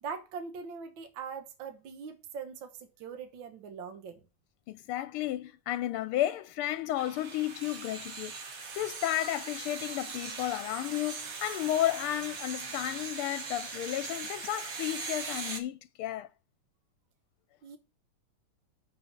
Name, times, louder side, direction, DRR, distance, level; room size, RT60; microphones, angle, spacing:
voice 1, 0.0-4.2 17.6-17.8, right 6 dB, 65° right, 1.8 m, -41 dB
voice 2, 4.7-8.3 8.8-16.3, left 13 dB, 90° left, 1.5 m, -33 dB
sound 1, 7.0-15.6, right 5 dB, 45° right, 1.4 m, -40 dB
6.9 x 5.0 x 6.6 m
omnidirectional pair, 2.4 m